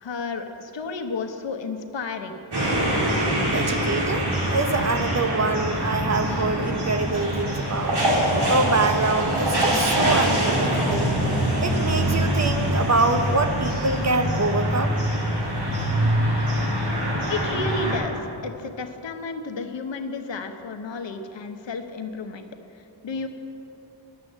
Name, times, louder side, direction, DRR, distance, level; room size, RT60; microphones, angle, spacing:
voice 1, 0.0-2.4 17.3-22.4 22.7-23.3, left 4 dB, 75° left, 6 dB, 1.0 m, -32 dB
sound 1, 2.5-18.0, right 1 dB, 60° right, 2.8 m, -24 dB
voice 2, 3.5-8.0 8.5-11.1 11.6-15.0, right 3 dB, 35° right, 7 dB, 0.6 m, -25 dB
11.5 x 7.5 x 7.2 m, 2.9 s
wide cardioid pair, 140°, 45 cm